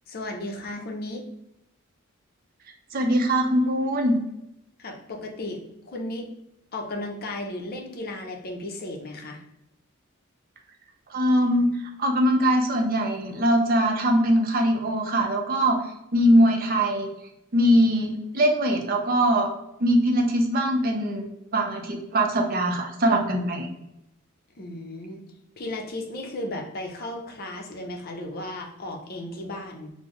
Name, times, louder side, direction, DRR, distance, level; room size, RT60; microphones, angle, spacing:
voice 1, 0.1-1.2 4.8-6.3 6.7-9.4 24.6-25.2 25.6-29.9, left 1 dB, 45° left, 1 dB, 0.6 m, -35 dB
voice 2, 2.9-4.2 11.1-11.7 12.0-15.8 16.1-17.1 17.5-19.5 19.8-23.7, equal, 45° right, 2 dB, 0.5 m, -22 dB
3.8 x 2.0 x 3.0 m, 0.86 s
head